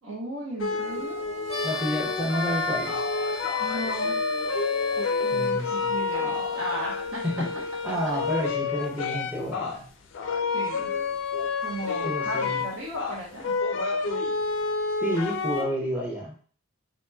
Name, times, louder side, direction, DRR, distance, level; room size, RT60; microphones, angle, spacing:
voice 1, 0.0-1.2 3.6-4.1 5.0-7.6 10.5-10.9 11.6-13.5, right 1 dB, 75° right, -3 dB, 0.8 m, -36 dB
sound 1, 0.6-9.8 10.1-15.6, left 4 dB, 60° left, 0.4 m, -29 dB
sound 2, 1.5-5.5, left 3 dB, 45° right, 1.2 m, -37 dB
voice 2, 1.6-3.0 5.3-5.9 7.2-7.5 7.8-9.9 12.0-12.6 15.0-16.3, equal, 5° right, -3 dB, 0.6 m, -30 dB
2.8 x 2.8 x 2.2 m, 0.43 s
head